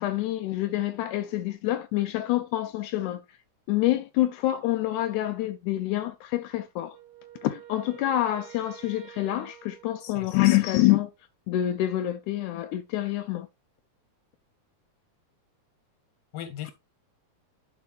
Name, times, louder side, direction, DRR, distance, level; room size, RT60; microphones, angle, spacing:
voice 1, 0.0-3.2 3.7-7.0 7.4-11.1 11.5-13.5, left 14 dB, 85° left, 2.0 m, -26 dB
Wind instrument woodwind instrument, 6.9-10.8, right 12 dB, 70° right, 1.5 m, -49 dB
voice 2, 10.0-10.6 16.3-16.7, left 10 dB, 60° left, 2.2 m, -38 dB
11.5 x 4.3 x 3.1 m
omnidirectional pair, 3.5 m